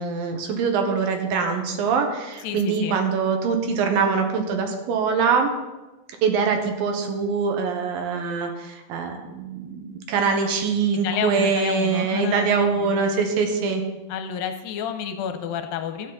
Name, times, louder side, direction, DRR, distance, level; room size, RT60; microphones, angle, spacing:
voice 1, 0.0-5.5 6.2-13.8, right 5 dB, 75° right, 4 dB, 2.8 m, -23 dB
voice 2, 2.4-3.0 10.9-13.1 14.1-16.1, left 8 dB, 80° left, 7 dB, 2.5 m, -30 dB
13.0 x 9.3 x 4.0 m, 1.1 s
omnidirectional pair, 4.2 m